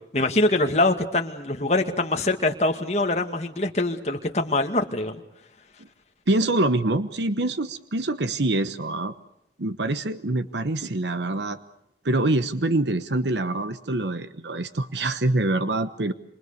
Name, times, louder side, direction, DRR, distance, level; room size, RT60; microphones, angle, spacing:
voice 1, 0.1-5.2, left 2 dB, 40° left, 4 dB, 2.1 m, -24 dB
voice 2, 6.3-9.1 9.6-11.6 12.0-16.1, right 2 dB, 80° right, 11 dB, 1.1 m, -25 dB
27.5 x 27.0 x 6.7 m, 0.79 s
head